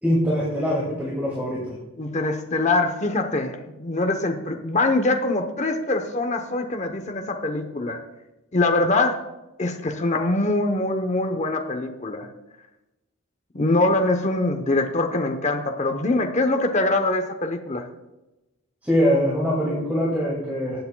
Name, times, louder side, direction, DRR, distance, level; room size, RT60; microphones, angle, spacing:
voice 1, 0.0-1.7 18.8-20.9, equal, 10° right, -5 dB, 2.3 m, -23 dB
voice 2, 2.0-8.0 8.5-9.2 9.6-12.3 13.5-17.9, left 2 dB, 30° left, 4 dB, 0.8 m, -23 dB
19.5 x 8.4 x 2.3 m, 1.0 s
head